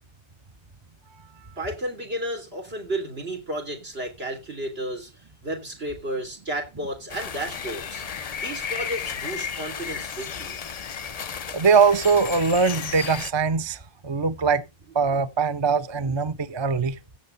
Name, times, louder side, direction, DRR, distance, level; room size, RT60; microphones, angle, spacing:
voice 1, 1.6-5.1 5.4-8.0 8.4-10.6, right 1 dB, 75° right, 3.5 m, -32 dB
sound 1, 7.1-13.3, left 7 dB, 45° left, 0.7 m, -33 dB
voice 2, 11.5-14.6 14.9-17.0, right 5 dB, 30° right, 0.7 m, -22 dB
16.0 x 7.1 x 4.0 m
omnidirectional pair, 1.0 m